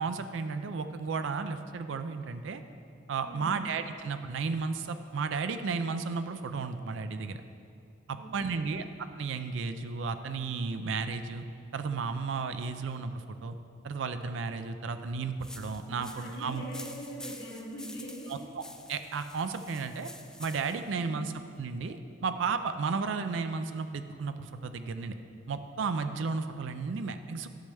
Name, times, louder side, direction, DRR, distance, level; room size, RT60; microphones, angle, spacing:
voice 1, 0.0-2.6 3.1-7.4 8.1-8.8 9.2-11.4 11.7-13.6 13.8-16.6 18.3-18.6 18.9-20.1 20.4-25.1 25.5-27.5, right 4 dB, 75° right, 9 dB, 0.4 m, -33 dB
voice 2, 3.2-3.6 8.1-8.8 15.9-18.4, equal, 85° left, -10 dB, 2.0 m, -42 dB
sound 1, 15.4-20.9, left 1 dB, 5° left, 0.3 m, -48 dB
11.5 x 6.4 x 3.4 m, 2.5 s
head